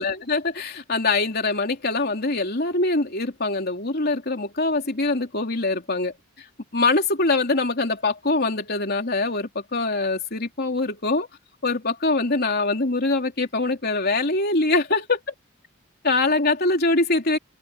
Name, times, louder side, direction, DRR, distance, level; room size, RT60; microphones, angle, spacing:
voice 1, 0.0-6.1 6.7-11.3 11.6-15.2 16.0-17.4, left 3 dB, 50° left, 3.4 m, -23 dB
head